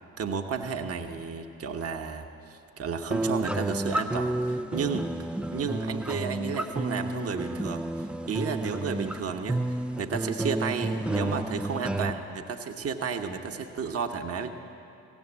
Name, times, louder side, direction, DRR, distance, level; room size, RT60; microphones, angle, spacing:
voice 1, 0.2-5.1 5.5-14.5, right 6 dB, 35° right, 4 dB, 1.1 m, -32 dB
sound 1, 3.1-12.1, right 1 dB, 5° right, 0.4 m, -31 dB
16.5 x 7.2 x 8.7 m, 2.5 s
hypercardioid pair, 45°, 42 cm